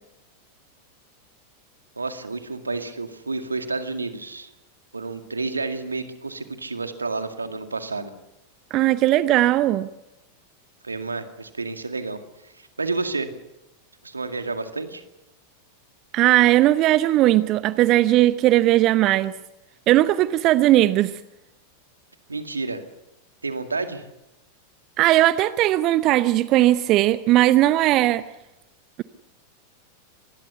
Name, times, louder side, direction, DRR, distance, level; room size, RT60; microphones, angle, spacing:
voice 1, 2.0-4.5 4.9-8.1 10.8-12.2 12.4-13.3 14.0-15.0 22.3-22.8 23.4-24.1, right 3 dB, 80° right, 7 dB, 2.1 m, -30 dB
voice 2, 8.7-9.9 16.1-19.3 19.9-21.1 25.0-28.2, right 15 dB, 35° right, 14 dB, 0.8 m, -18 dB
25.0 x 20.5 x 6.9 m, 0.93 s
figure-of-eight pair, 90°, 0 cm